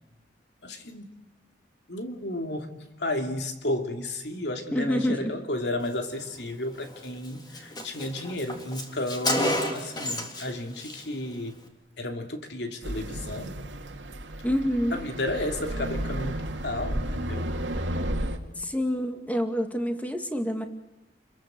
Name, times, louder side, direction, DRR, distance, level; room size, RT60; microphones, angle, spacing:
voice 1, 0.6-1.1 1.9-11.6 12.0-13.6 14.9-17.5, left 1 dB, 65° left, 5 dB, 2.8 m, -33 dB
voice 2, 4.7-5.3 14.4-15.0 18.6-20.7, equal, 10° left, 6 dB, 2.2 m, -27 dB
Car, 6.8-7.0 7.2-7.3 7.5-10.5 10.8-11.0, left 1 dB, 25° left, 3.4 m, -30 dB
sound 1, 12.8-18.4, right 1 dB, 90° right, 2.5 m, -32 dB
29.5 x 22.0 x 7.8 m, 1.0 s
head